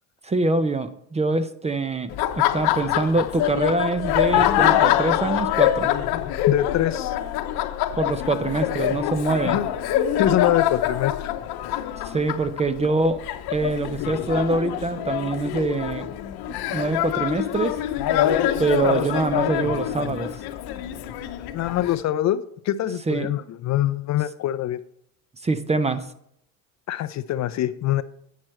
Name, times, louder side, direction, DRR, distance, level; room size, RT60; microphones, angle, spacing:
voice 1, 0.2-2.1 2.4-5.9 8.0-9.6 12.0-13.2 13.5-16.1 16.7-17.8 18.6-20.3 23.1-23.3 25.4-26.0, right 3 dB, 15° right, 12 dB, 0.5 m, -24 dB
Laughter, 2.1-22.0, left 11 dB, 65° left, 0.9 m, -25 dB
voice 2, 6.5-7.2 9.4-9.7 10.2-11.3 21.5-24.8 26.9-28.0, left 12 dB, 45° left, 13 dB, 0.4 m, -24 dB
9.3 x 6.2 x 4.3 m, 0.71 s
supercardioid pair, 105°, 41 cm